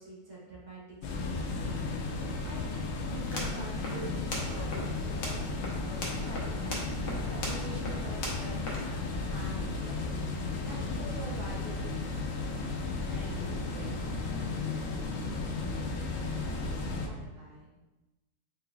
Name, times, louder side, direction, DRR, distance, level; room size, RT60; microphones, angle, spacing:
voice 1, 0.0-10.3 10.7-12.4 17.0-17.7, right 2 dB, 50° right, -6 dB, 1.7 m, -47 dB
sound 1, 1.0-17.1, left 3 dB, 90° left, 0.7 m, -34 dB
sound 2, 3.1-9.5, left 1 dB, 70° left, 1.5 m, -40 dB
voice 2, 13.1-16.3, right 3 dB, 85° right, -3 dB, 1.3 m, -49 dB
4.0 x 3.7 x 2.3 m, 1.1 s
omnidirectional pair, 2.0 m